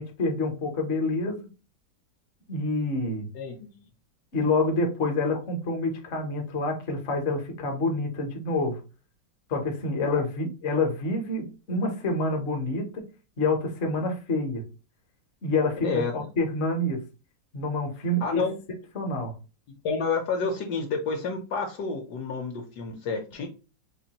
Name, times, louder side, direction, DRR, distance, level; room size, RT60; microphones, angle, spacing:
voice 1, 0.0-1.4 2.5-3.3 4.3-8.8 9.5-13.0 13.4-14.6 15.4-17.0 17.5-18.4 18.9-19.3, left 2 dB, 50° left, 3 dB, 0.9 m, -27 dB
voice 2, 3.3-3.7 10.0-10.2 15.8-16.1 18.2-18.5 19.8-23.5, left 4 dB, 70° left, 3 dB, 1.1 m, -29 dB
4.6 x 2.5 x 2.8 m, 0.33 s
omnidirectional pair, 2.0 m